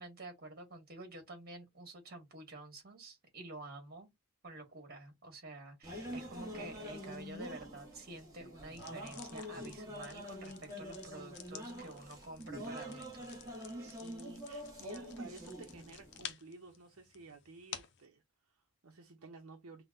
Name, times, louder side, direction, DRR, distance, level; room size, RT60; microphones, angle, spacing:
voice 1, 0.0-4.1 4.4-13.4, right 2 dB, 45° right, 1.7 m, -49 dB
sound 1, 5.8-16.3, equal, 15° right, 1.2 m, -46 dB
sound 2, 8.7-18.0, left 8 dB, 50° left, 0.6 m, -53 dB
voice 2, 13.5-19.8, right 3 dB, 75° right, 0.7 m, -54 dB
5.6 x 2.2 x 2.6 m
head